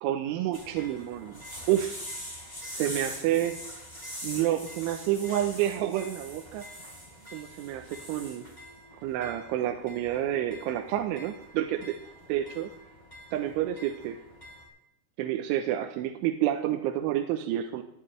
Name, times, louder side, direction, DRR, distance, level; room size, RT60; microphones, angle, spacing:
voice 1, 0.0-1.4 1.7-2.0 2.6-3.6 4.2-6.6 7.3-8.4 9.0-12.0 12.3-12.7 13.3-14.2 15.2-17.8, right 12 dB, 85° right, 4 dB, 3.3 m, -29 dB
sound 1, 0.5-14.7, equal, 10° left, 3.1 m, -44 dB
19.5 x 12.5 x 3.3 m, 0.81 s
omnidirectional pair, 5.5 m